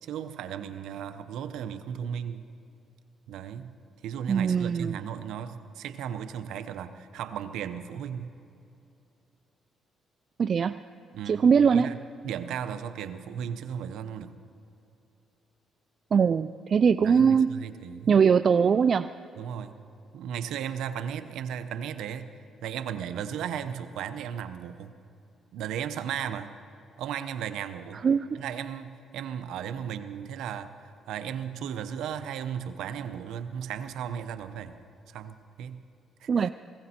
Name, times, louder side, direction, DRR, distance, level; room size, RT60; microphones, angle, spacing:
voice 1, 0.0-2.4 3.3-3.7 4.0-8.3 11.1-12.0 12.2-14.3 17.0-18.1 19.4-19.8 20.1-22.3 22.6-24.9 25.5-26.5 27.0-28.0 28.4-34.8 35.1-35.8 36.2-36.5, right 8 dB, 85° right, 10 dB, 0.7 m, -35 dB
voice 2, 4.3-5.0 10.4-10.8 11.3-11.9 16.1-17.6 18.1-19.2 27.9-28.4 36.3-36.5, right 6 dB, 50° right, 12 dB, 0.3 m, -22 dB
19.5 x 16.5 x 4.3 m, 2.7 s
cardioid pair, 90°, 0 cm